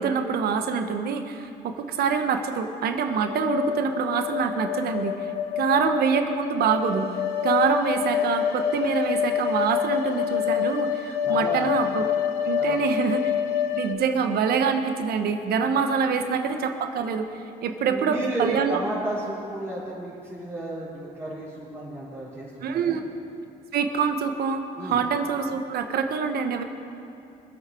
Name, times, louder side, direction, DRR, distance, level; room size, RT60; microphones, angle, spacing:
voice 1, 0.0-5.2 5.6-12.0 12.4-13.3 13.8-18.8 22.6-23.0 23.7-26.6, right 6 dB, 65° right, 6 dB, 1.2 m, -25 dB
sound 1, 3.1-13.9, left 9 dB, 80° left, 0.9 m, -27 dB
voice 2, 11.2-11.7 12.6-13.0 17.9-23.0 24.8-25.0, right 1 dB, 15° right, -11 dB, 3.9 m, -32 dB
24.0 x 8.5 x 4.5 m, 2.7 s
cardioid pair, 110°, 17 cm